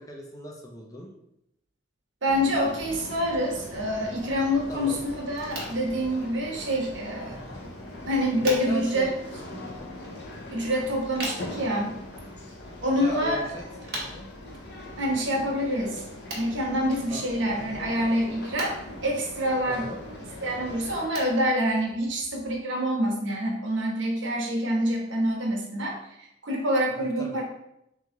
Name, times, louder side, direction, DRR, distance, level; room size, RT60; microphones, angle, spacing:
voice 1, 0.1-1.1 4.7-5.0 7.3-7.7 8.4-9.1 9.6-9.9 12.9-13.6 13.9-14.3 17.1-17.2 17.5-17.9 19.7-20.0 27.2-27.4, equal, 20° left, -1 dB, 0.5 m, -39 dB
voice 2, 2.2-7.4 8.1-9.1 10.5-11.9 12.8-13.4 15.0-16.0 16.3-18.8 19.0-19.8 20.4-27.4, equal, 75° right, 0 dB, 0.9 m, -26 dB
sound 1, 2.3-21.1, left 1 dB, 55° left, 0.6 m, -41 dB
sound 2, 5.3-22.6, right 1 dB, 55° right, 1.1 m, -44 dB
3.4 x 3.1 x 3.8 m, 0.82 s
head